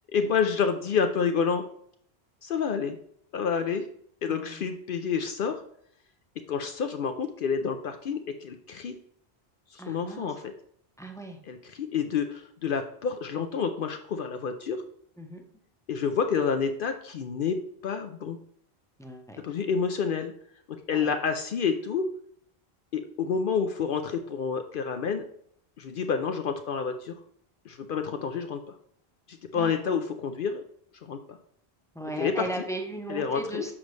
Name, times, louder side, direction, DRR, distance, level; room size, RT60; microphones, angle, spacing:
voice 1, 0.1-1.6 2.4-3.0 3.3-3.9 4.2-5.6 6.5-9.0 9.7-10.5 11.5-14.8 15.9-17.6 17.8-18.4 19.4-20.3 20.7-22.0 22.9-25.2 25.8-27.1 27.7-28.7 29.3-30.6 31.0-31.4 32.2-32.5 33.1-33.6, left 6 dB, 65° left, 7 dB, 0.7 m, -29 dB
voice 2, 4.3-4.8 9.8-10.3 11.0-11.4 15.2-15.4 19.0-19.4 20.9-21.1 29.5-30.0 31.9-33.7, right 1 dB, 5° left, 3 dB, 0.7 m, -37 dB
7.3 x 5.2 x 3.2 m, 0.65 s
omnidirectional pair, 1.1 m